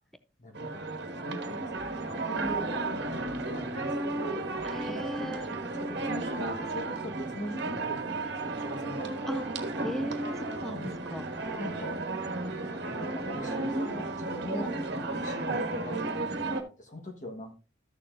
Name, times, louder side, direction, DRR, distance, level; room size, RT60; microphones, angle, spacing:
voice 1, 0.4-4.5 4.9-9.4 10.7-10.9 11.6-12.0 12.8-17.5, equal, 40° left, 3 dB, 1.3 m, -42 dB
sound 1, 0.5-16.6, right 2 dB, 55° right, 1.4 m, -33 dB
voice 2, 4.7-5.5 9.3-9.4 9.8-11.5 12.6-12.7, equal, ahead, 10 dB, 0.5 m, -37 dB
13.5 x 6.8 x 2.6 m, 0.32 s
head